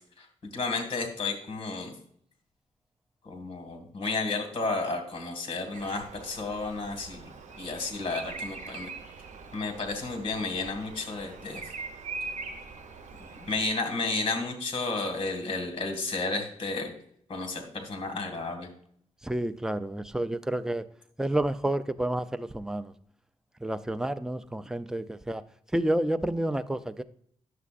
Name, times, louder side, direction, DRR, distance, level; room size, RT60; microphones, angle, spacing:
voice 1, 0.5-1.9 3.2-7.3 7.6-8.9 9.5-11.6 13.4-16.9 17.3-18.7, left 3 dB, 45° left, 1.8 m, -32 dB
Bird vocalization bird call bird song, 5.7-13.7, right 4 dB, 75° right, 1.0 m, -42 dB
voice 2, 19.2-20.9 21.2-22.9 23.6-25.4 25.7-27.0, right 1 dB, 5° right, 0.4 m, -29 dB
9.4 x 6.7 x 2.4 m
cardioid pair, 105°, 13 cm